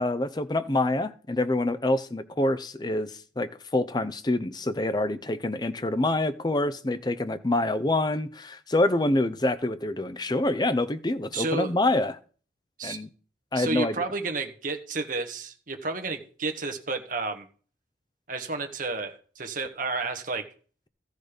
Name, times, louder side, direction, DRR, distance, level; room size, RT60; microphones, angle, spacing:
voice 1, 0.0-12.2 12.8-13.1 13.5-14.0, left 2 dB, 25° left, 0.6 m, -26 dB
voice 2, 11.3-11.7 12.8-13.0 13.5-17.5 18.3-20.4, right 3 dB, 45° right, 1.4 m, -31 dB
14.0 x 6.5 x 5.1 m
head